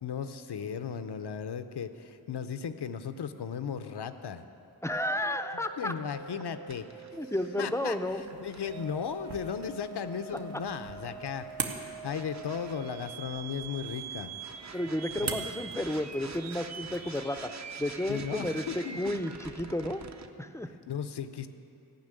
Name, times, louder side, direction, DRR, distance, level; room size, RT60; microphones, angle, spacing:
voice 1, 0.0-4.4 5.8-6.9 7.6-11.5 11.8-14.4 15.2-15.5 18.1-19.2 20.9-21.5, left 7 dB, 70° left, 10 dB, 0.7 m, -36 dB
voice 2, 4.8-5.9 7.1-8.2 14.7-17.5 17.8-20.0 20.4-20.7, left 1 dB, 5° left, 10 dB, 0.5 m, -32 dB
sound 1, 5.2-20.3, right 6 dB, 40° right, 0.7 m, -44 dB
sound 2, 8.1-17.3, right 5 dB, 75° right, 1.1 m, -44 dB
14.5 x 5.9 x 8.9 m, 2.7 s
wide cardioid pair, 85°, 41 cm